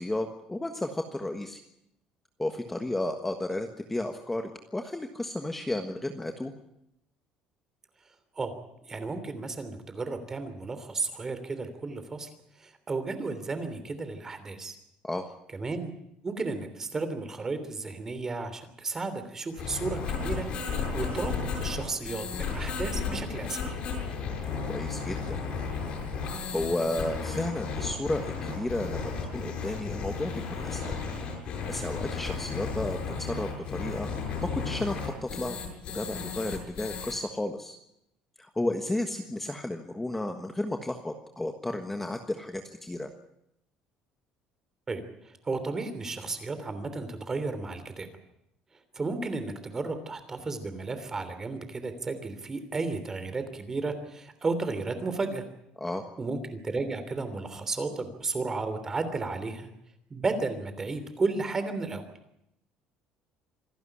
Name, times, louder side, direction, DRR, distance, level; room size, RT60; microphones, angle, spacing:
voice 1, 0.0-1.6 2.4-6.5 15.0-15.2 24.7-25.4 26.5-30.9 31.7-34.1 34.4-35.6 35.9-37.8 38.4-43.1 55.8-56.0, left 1 dB, 10° left, 5 dB, 1.4 m, -33 dB
voice 2, 8.9-12.3 12.6-14.8 15.5-15.9 16.2-20.5 20.9-23.6 44.9-45.0 45.4-48.1 48.9-55.4 56.2-59.7 60.1-62.0, right 3 dB, 20° right, 10 dB, 3.1 m, -33 dB
sound 1, 19.6-37.1, left 5 dB, 50° left, 7.9 m, -34 dB
26.5 x 12.0 x 10.0 m, 0.81 s
cardioid pair, 145°, 2 cm